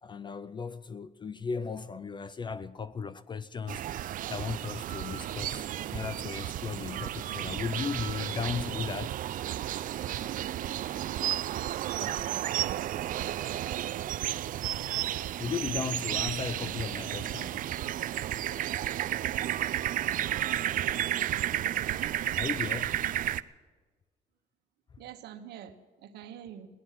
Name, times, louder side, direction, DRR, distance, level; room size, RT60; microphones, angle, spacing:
voice 1, 0.0-9.2 15.4-17.7 22.4-23.0 24.9-25.0, left 5 dB, 25° left, 0.4 m, -36 dB
sound 1, 3.7-23.4, right 12 dB, 55° right, 0.5 m, -32 dB
voice 2, 11.7-12.8 21.6-22.2 25.0-26.7, right 10 dB, 75° right, 1.3 m, -45 dB
16.5 x 11.5 x 7.5 m
cardioid pair, 110°, 17 cm